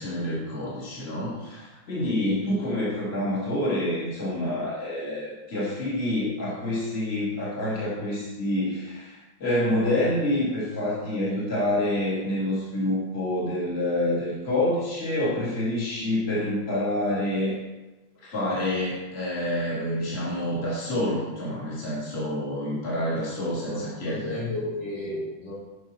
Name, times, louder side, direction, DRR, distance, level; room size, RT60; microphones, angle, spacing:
voice 1, 0.0-17.5 18.2-24.4, left 1 dB, 30° left, -8 dB, 3.2 m, -27 dB
voice 2, 2.0-2.4 19.7-20.0 23.4-25.5, left 1 dB, 70° left, -8 dB, 5.1 m, -34 dB
13.0 x 6.6 x 4.4 m, 1.1 s
omnidirectional pair, 2.2 m